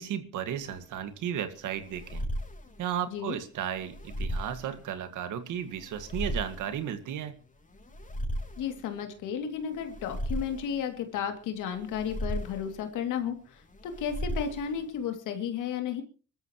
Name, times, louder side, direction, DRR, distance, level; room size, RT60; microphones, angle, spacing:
voice 1, 0.0-2.3 2.8-7.4, right 9 dB, 85° right, 10 dB, 1.9 m, -34 dB
sound 1, 0.6-15.1, equal, 25° left, 3.9 m, -38 dB
voice 2, 8.6-16.0, left 8 dB, 85° left, 6 dB, 2.7 m, -33 dB
25.5 x 13.5 x 3.1 m, 0.37 s
cardioid pair, 90°, 30 cm